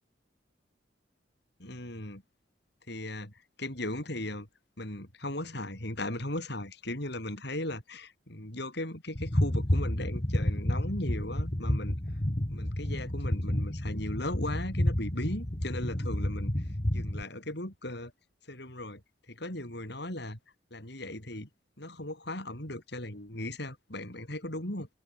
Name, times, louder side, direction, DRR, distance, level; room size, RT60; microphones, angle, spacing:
voice 1, 1.6-2.2 2.9-4.5 4.8-12.0 12.5-16.5 16.9-18.1 18.5-19.0 19.3-20.4 20.7-21.5 21.8-24.9, left 1 dB, 60° left, 6.4 m, -37 dB
sound 1, 9.1-17.2, left 1 dB, 30° left, 1.8 m, -30 dB
head